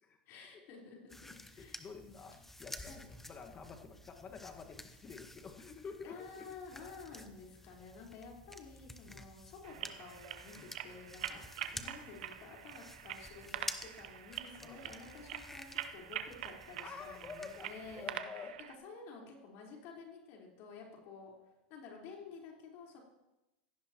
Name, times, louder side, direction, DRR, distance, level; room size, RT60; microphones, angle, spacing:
voice 1, 0.3-2.2 2.9-3.0 6.0-11.4 11.7-18.2 18.7-21.3 21.7-23.0, left 4 dB, 50° left, -2 dB, 4.3 m, -52 dB
sound 1, 1.1-18.2, left 1 dB, 5° left, 1.0 m, -51 dB
voice 2, 1.4-2.3 2.6-6.5 9.0-9.2 10.6-10.7 11.3-11.4 14.6-14.8 16.8-17.7 18.0-18.5, left 5 dB, 25° left, 4 dB, 1.7 m, -49 dB
sound 2, 9.6-18.8, right 11 dB, 75° right, 0.9 m, -45 dB
16.5 x 15.0 x 3.0 m, 0.98 s
supercardioid pair, 120°, 5 cm